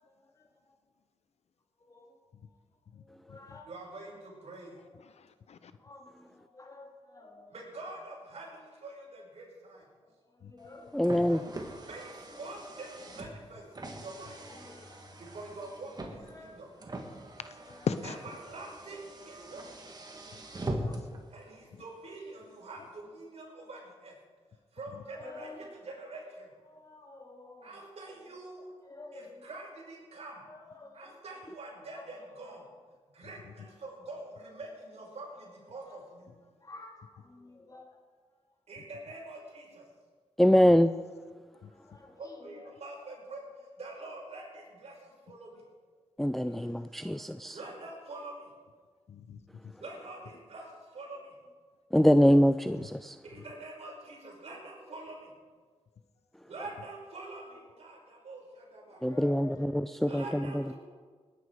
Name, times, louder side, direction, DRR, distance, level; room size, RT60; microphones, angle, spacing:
voice 1, 1.8-2.2 2.4-2.6 3.0-3.7 5.8-7.6 10.0-11.3 14.4-15.3 16.2-16.6 17.6-17.9 20.5-21.0 22.6-22.7 25.0-26.2 26.7-27.9 28.8-29.5 30.4-31.2 31.9-32.3 35.9-36.0 36.6-38.0 41.5-42.8 45.5-45.6 46.3-47.2 57.7-57.8 58.9-59.8 60.1-60.2, left 2 dB, 30° left, 1 dB, 3.0 m, -51 dB
voice 2, 2.9-3.6 5.0-5.7 10.4-10.5 17.9-18.2 21.7-21.8 24.9-25.0 33.2-33.5 40.7-40.8 41.6-42.0 46.6-46.7 49.1-49.7 52.8-52.9 53.3-53.4, left 6 dB, 70° left, 11 dB, 0.9 m, -40 dB
voice 3, 3.6-4.8 7.5-9.9 11.9-14.4 15.2-16.7 18.0-19.8 21.3-24.1 24.7-26.5 27.6-28.7 29.1-30.5 30.9-32.7 33.1-36.3 38.7-39.9 42.2-45.6 47.5-48.5 49.8-51.3 53.2-55.3 56.5-59.2 60.0-60.7, right 2 dB, 65° right, -2 dB, 5.7 m, -45 dB
Car, 10.6-21.2, right 1 dB, 35° right, 2.4 m, -42 dB
voice 4, 10.9-11.4 40.4-40.9 46.2-47.5 51.9-53.2 59.0-59.8 60.1-60.4, equal, ahead, 12 dB, 0.4 m, -23 dB
19.5 x 10.5 x 4.9 m, 1.5 s
cardioid pair, 75°, 11 cm